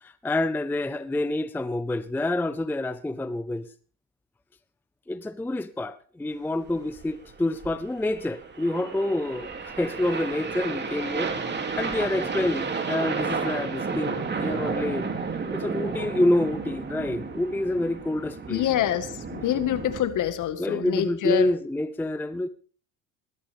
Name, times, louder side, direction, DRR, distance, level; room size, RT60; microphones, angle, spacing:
voice 1, 0.0-3.7 5.1-11.3 11.8-15.1 15.5-18.6 20.6-22.5, left 1 dB, 5° left, 0.6 m, -27 dB
sound 1, 6.7-20.0, right 4 dB, 25° right, 2.8 m, -32 dB
voice 2, 18.5-21.5, left 11 dB, 50° left, 1.7 m, -26 dB
19.0 x 12.5 x 3.5 m
supercardioid pair, 90°, 38 cm